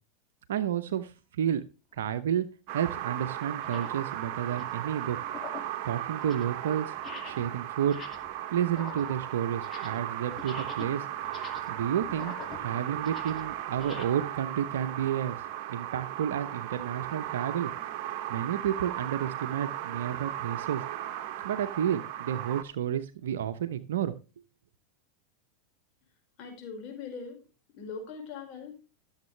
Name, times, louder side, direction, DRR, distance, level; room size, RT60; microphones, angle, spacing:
voice 1, 0.5-1.6 1.9-2.5 2.7-5.2 5.8-6.9 7.2-8.0 8.5-11.0 11.7-12.3 12.6-15.4 15.7-17.7 18.3-20.8 21.4-24.1, right 9 dB, 75° right, 10 dB, 0.7 m, -31 dB
sound 1, 2.0-2.2 2.9-3.0 3.5-4.0 4.4-4.8 5.2-5.8 6.1-6.5 6.9-7.5 7.8-8.4 8.6-10.1 10.3-14.0, left 6 dB, 30° left, 2.1 m, -46 dB
sound 2, 2.7-22.6, right 12 dB, 55° right, 1.2 m, -36 dB
voice 2, 26.4-27.4 27.8-28.8, left 5 dB, 50° left, 2 dB, 5.1 m, -41 dB
14.5 x 7.3 x 3.3 m, 0.31 s
hypercardioid pair, 95°, 0 cm